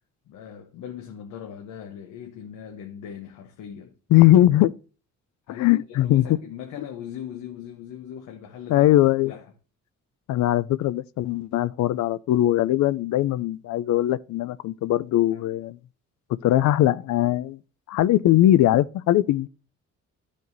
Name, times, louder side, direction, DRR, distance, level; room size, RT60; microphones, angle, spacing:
voice 1, 0.3-3.9 5.5-8.9 9.2-9.4 15.3-15.4, left 9 dB, 85° left, 0.9 m, -39 dB
voice 2, 4.1-4.7 5.5-6.2 8.7-9.3 10.3-15.8 16.4-17.6 17.9-19.5, left 14 dB, 70° left, 0.5 m, -20 dB
12.0 x 5.1 x 2.7 m
cardioid pair, 90°, 30 cm